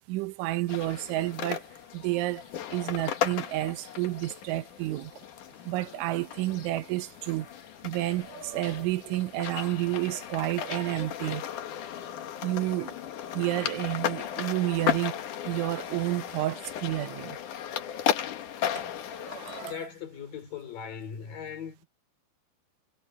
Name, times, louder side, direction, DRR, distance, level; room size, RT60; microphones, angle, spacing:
voice 1, 0.1-1.6 1.9-2.4 2.7-5.1 5.7-7.5 7.8-11.4 12.4-13.0 13.3-15.2 15.5-17.4 18.7-19.8, right 16 dB, 80° right, 3.4 m, -30 dB
sound 1, 0.7-19.7, left 10 dB, 70° left, 2.0 m, -35 dB
voice 2, 19.6-21.9, left 8 dB, 45° left, 5.6 m, -39 dB
omnidirectional pair, 5.7 m